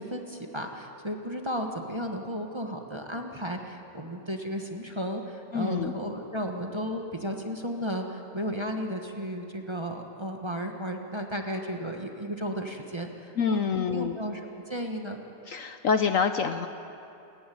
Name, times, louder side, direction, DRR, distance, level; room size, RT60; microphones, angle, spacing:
voice 1, 0.0-15.2, equal, 20° right, 2 dB, 1.3 m, -34 dB
voice 2, 5.5-5.9 13.4-14.2 15.5-16.7, left 6 dB, 60° left, 8 dB, 1.0 m, -26 dB
28.5 x 11.5 x 9.4 m, 2.9 s
omnidirectional pair, 1.8 m